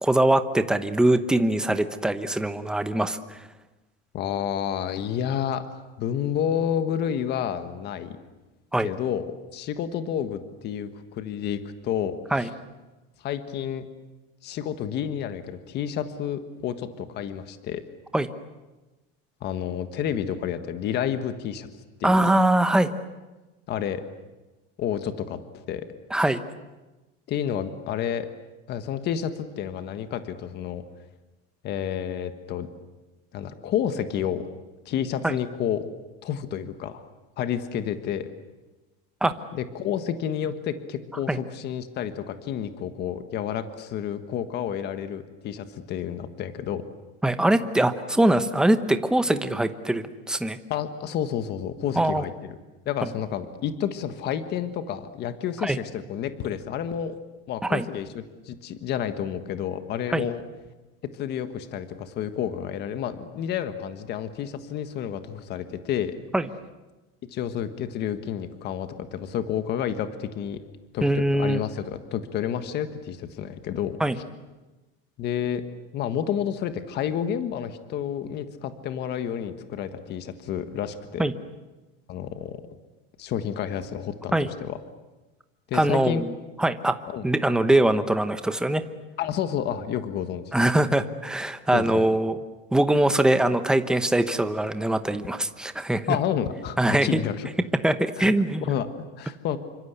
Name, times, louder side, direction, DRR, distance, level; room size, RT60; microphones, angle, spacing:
voice 1, 0.0-3.4 8.7-8.9 12.3-12.5 18.1-18.3 22.0-22.9 26.1-26.4 35.2-35.3 39.2-39.3 41.3-41.4 47.2-50.6 52.0-52.2 55.6-55.8 57.6-57.9 60.1-60.2 66.3-66.5 71.0-71.6 74.0-74.2 81.2-81.3 84.3-84.5 85.7-86.3 86.6-87.0 87.2-88.8 90.5-92.4 92.7-96.2 96.8-97.2 97.8-98.8, right 1 dB, ahead, 9 dB, 0.9 m, -22 dB
voice 2, 4.1-5.6 6.0-8.2 8.8-12.5 13.2-13.8 14.4-17.8 19.4-21.7 22.0-22.3 23.7-24.0 24.8-25.8 27.3-28.3 28.7-30.8 31.6-32.7 33.3-34.4 34.8-35.8 36.2-37.1 37.4-38.3 39.5-46.8 50.7-52.3 52.8-57.1 57.5-58.1 58.4-60.4 61.1-66.1 67.3-70.6 70.9-74.0 75.2-75.6 75.9-81.3 82.1-82.6 83.2-84.8 85.7-86.2 87.1-87.3 89.2-90.5 91.7-91.8 96.1-97.5 98.2-98.3 98.6-99.6, left 9 dB, 35° left, 10 dB, 1.6 m, -30 dB
28.5 x 25.5 x 8.3 m, 1.1 s
cardioid pair, 170°, 30 cm